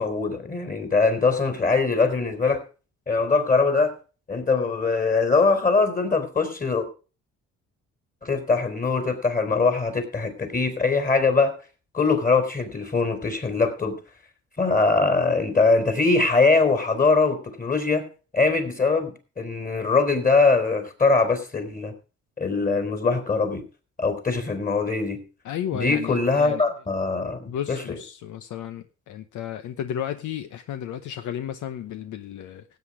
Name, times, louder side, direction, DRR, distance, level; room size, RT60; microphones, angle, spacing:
voice 1, 0.0-2.6 3.1-3.9 4.3-6.9 8.2-11.6 11.9-14.0 14.6-18.1 18.3-21.9 22.4-23.6 24.0-25.2 25.7-28.0, left 4 dB, 25° left, 3.7 m, -22 dB
voice 2, 25.4-26.6 27.5-32.6, left 10 dB, 80° left, 0.9 m, -33 dB
16.0 x 8.4 x 4.8 m
cardioid pair, 90°, 30 cm